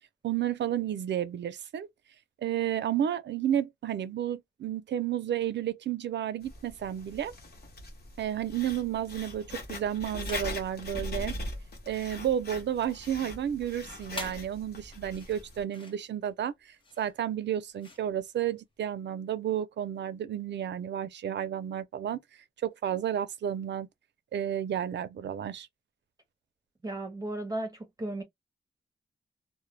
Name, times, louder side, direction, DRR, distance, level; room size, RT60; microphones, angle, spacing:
voice 1, 0.2-1.9 2.4-7.3 8.2-11.3 11.9-22.2 22.6-23.9 24.3-25.7, right 10 dB, 70° right, 0.4 m, -32 dB
Writing, 6.4-15.6, left 2 dB, 55° left, 0.9 m, -41 dB
sound 1, 10.0-10.6 11.1-18.9, left 3 dB, 25° left, 0.7 m, -48 dB
voice 2, 26.8-28.2, right 1 dB, 20° right, 0.5 m, -35 dB
2.1 x 2.0 x 3.1 m
wide cardioid pair, 130°, 19 cm